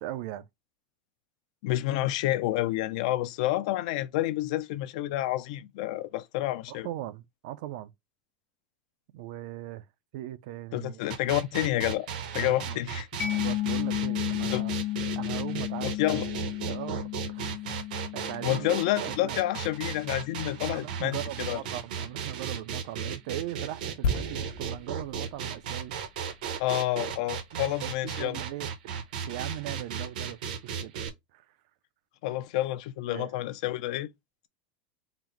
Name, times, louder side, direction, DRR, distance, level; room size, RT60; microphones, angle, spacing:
voice 1, 0.0-0.5 6.7-7.9 9.1-9.9 10.1-11.0 12.4-12.8 13.2-14.8 15.1-15.9 16.6-17.8 18.1-18.7 19.0-19.4 20.7-26.0 27.5-30.9 31.3-31.4 33.1-33.3, right 14 dB, 50° right, 0.4 m, -39 dB
voice 2, 1.6-6.9 10.7-12.1 12.3-13.1 14.5-14.6 15.8-16.3 18.4-21.6 26.6-28.4 32.2-34.1, left 15 dB, 55° left, 0.4 m, -29 dB
sound 1, 11.1-31.1, right 7 dB, 70° right, 0.8 m, -35 dB
Mallet percussion, 13.2-20.6, left 14 dB, 35° left, 0.8 m, -33 dB
sound 2, 24.0-27.7 27.9-28.1, left 2 dB, 70° left, 0.8 m, -35 dB
3.9 x 2.0 x 4.3 m
supercardioid pair, 170°, 5 cm